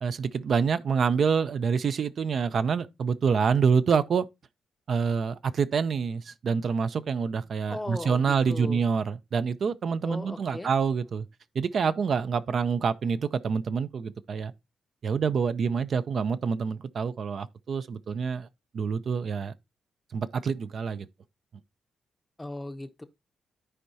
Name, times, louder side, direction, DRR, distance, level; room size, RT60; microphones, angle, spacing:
voice 1, 0.0-4.3 4.9-11.3 11.6-14.5 15.0-18.5 18.7-19.5 20.1-21.1, right 6 dB, 50° right, 0.4 m, -27 dB
voice 2, 7.7-8.8 10.0-10.7 22.4-23.0, left 1 dB, 10° left, 0.6 m, -37 dB
13.0 x 4.6 x 2.7 m
wide cardioid pair, 160°, 0 cm